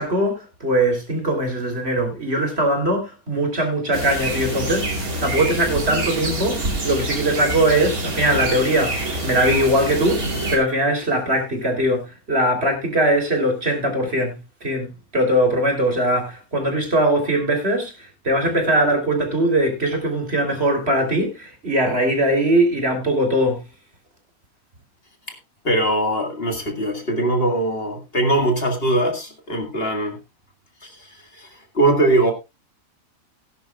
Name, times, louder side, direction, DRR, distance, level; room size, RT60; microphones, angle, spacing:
voice 1, 0.0-4.9 5.2-10.2 10.5-14.4 14.6-17.9 18.2-23.6, right 1 dB, 45° right, 3.6 m, -21 dB
sound 1, 3.9-10.6, right 2 dB, 80° right, 3.2 m, -26 dB
voice 2, 25.6-30.2 30.8-31.1 31.4-31.5 31.7-32.3, right 1 dB, 45° left, 2.1 m, -21 dB
18.5 x 10.5 x 2.4 m
omnidirectional pair, 1.5 m